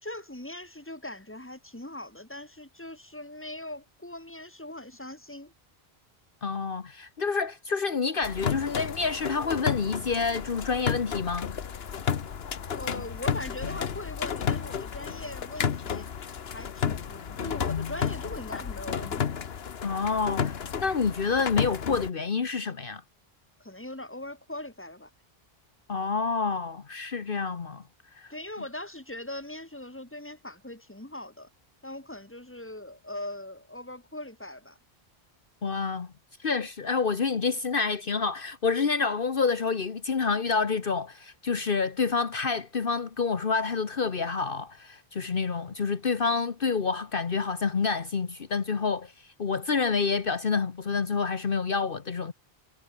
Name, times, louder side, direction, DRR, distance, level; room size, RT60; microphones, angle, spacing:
voice 1, 0.0-5.5 12.8-16.1 16.5-19.4 23.6-25.1 28.3-31.5 31.8-34.8, left 1 dB, 10° left, 2.6 m, -40 dB
voice 2, 6.4-11.5 19.8-23.0 25.9-27.8 28.1-28.3 35.6-36.1 36.4-52.3, left 5 dB, 60° left, 1.4 m, -28 dB
sound 1, 8.2-22.1, left 7 dB, 75° left, 1.3 m, -32 dB
omnidirectional pair, 1.1 m